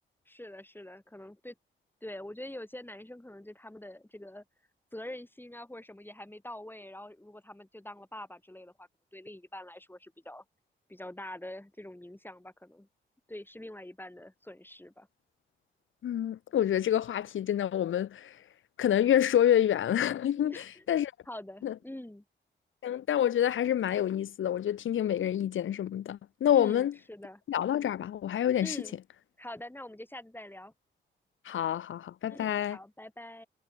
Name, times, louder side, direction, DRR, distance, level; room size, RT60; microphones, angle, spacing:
voice 1, 0.3-1.5 2.0-4.4 4.9-10.4 10.9-12.9 13.3-15.1 20.4-20.8 21.3-22.2 26.5-27.4 28.6-28.9 29.4-30.7 32.2-33.5, left 1 dB, 10° left, 6.4 m, -45 dB
voice 2, 16.0-18.4 18.8-21.1 21.6-21.7 22.8-26.9 27.5-28.8 31.4-32.8, left 10 dB, 75° left, 0.9 m, -27 dB
cardioid pair, 55°, 20 cm